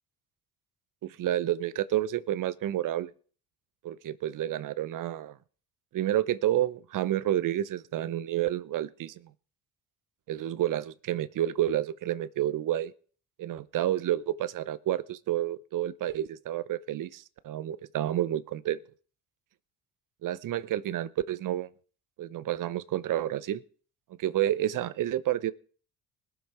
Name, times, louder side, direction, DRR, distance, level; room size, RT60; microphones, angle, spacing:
voice 1, 1.0-3.1 3.8-5.4 5.9-9.2 10.3-12.9 13.4-18.8 20.2-21.7 22.2-23.6 24.2-25.5, right 12 dB, 60° right, 0.8 m, -30 dB
20.5 x 7.2 x 4.4 m
supercardioid pair, 75°, 36 cm